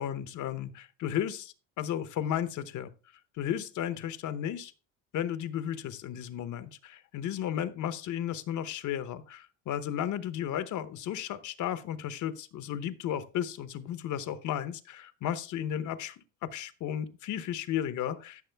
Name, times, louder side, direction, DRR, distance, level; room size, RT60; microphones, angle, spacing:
voice 1, 0.0-2.9 3.4-4.7 5.1-18.4, left 10 dB, 50° left, 12 dB, 1.0 m, -34 dB
13.5 x 6.3 x 3.4 m, 0.35 s
cardioid pair, 120°, 37 cm